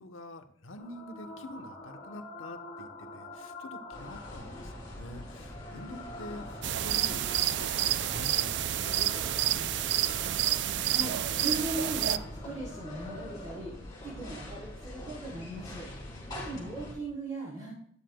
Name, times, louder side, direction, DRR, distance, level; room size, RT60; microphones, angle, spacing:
voice 1, 0.0-10.3 16.0-16.5, left 1 dB, 85° left, 7 dB, 1.0 m, -47 dB
sound 1, 0.8-15.8, left 2 dB, 50° left, 2.7 m, -47 dB
sound 2, 3.9-16.9, left 1 dB, 20° left, 4.0 m, -44 dB
sound 3, 6.6-12.2, right 12 dB, 60° right, 0.3 m, -29 dB
voice 2, 10.9-13.7 14.0-15.9 16.3-17.7, right 2 dB, 40° right, -7 dB, 3.6 m, -38 dB
12.5 x 9.8 x 2.3 m, 0.69 s
head